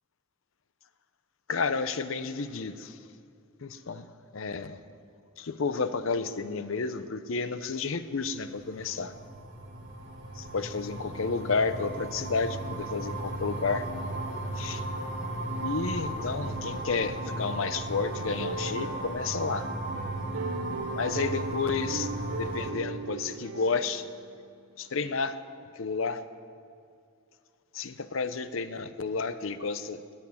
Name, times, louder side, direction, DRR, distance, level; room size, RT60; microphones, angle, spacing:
voice 1, 1.5-3.0 3.6-4.1 4.3-4.8 5.4-9.1 10.3-13.9 14.6-14.8 15.6-19.7 20.9-22.1 22.4-24.1 24.8-25.4 25.7-26.2 27.7-30.1, left 4 dB, 70° left, 12 dB, 0.7 m, -31 dB
sound 1, 8.3-22.7, right 1 dB, 60° right, 2.2 m, -36 dB
sound 2, 17.5-24.5 25.0-25.4, right 4 dB, 75° right, 0.4 m, -40 dB
20.5 x 7.2 x 7.2 m, 2.4 s
head